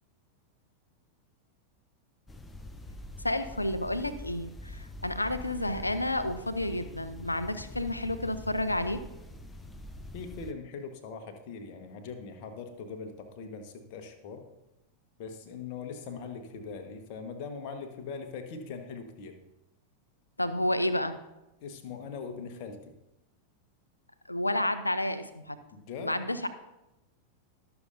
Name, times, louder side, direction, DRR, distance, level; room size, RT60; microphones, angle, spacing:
sound 1, 2.3-10.5, left 1 dB, 15° left, 0.7 m, -45 dB
voice 1, 3.2-9.0 20.4-21.1 24.3-25.6 26.0-26.5, left 1 dB, 85° left, 12 dB, 0.6 m, -30 dB
voice 2, 10.1-14.4 15.2-19.3 21.6-22.9 25.7-26.1, left 5 dB, 45° left, 6 dB, 1.3 m, -41 dB
20.5 x 6.9 x 2.6 m, 0.93 s
figure-of-eight pair, 90°, 0 cm